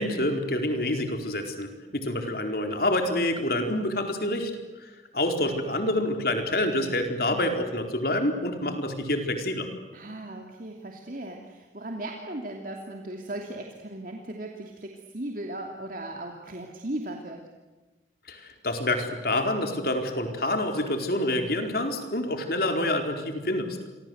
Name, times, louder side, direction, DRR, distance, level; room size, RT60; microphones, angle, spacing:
voice 1, 0.0-4.5 4.8-9.7 18.3-23.8, left 1 dB, 55° left, 5 dB, 4.4 m, -27 dB
voice 2, 9.9-17.4, right 1 dB, 50° right, 2 dB, 2.8 m, -37 dB
30.0 x 25.0 x 8.1 m, 1.2 s
head